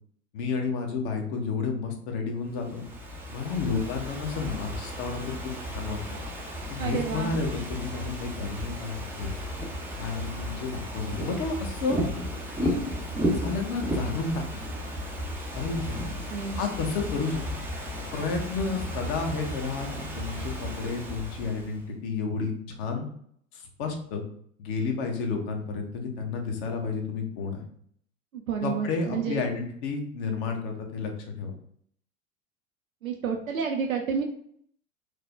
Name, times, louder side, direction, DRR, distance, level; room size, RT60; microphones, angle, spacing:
voice 1, 0.3-2.9 3.3-5.3 5.7-6.0 6.7-9.3 9.9-12.0 12.6-12.9 13.4-14.6 15.5-16.1 16.6-17.4 18.1-19.9 20.1-23.1 23.5-24.2 24.6-27.6 28.6-31.1 31.4-31.5, left 4 dB, 50° left, 3 dB, 0.8 m, -31 dB
Ocean / Fireworks, 2.5-21.8, equal, 5° right, 0.4 m, -34 dB
voice 2, 6.8-7.4 16.3-16.6 28.3-29.5 33.0-34.2, right 6 dB, 90° right, 2 dB, 0.5 m, -30 dB
3.3 x 2.1 x 3.2 m, 0.65 s
figure-of-eight pair, 85°, 40 cm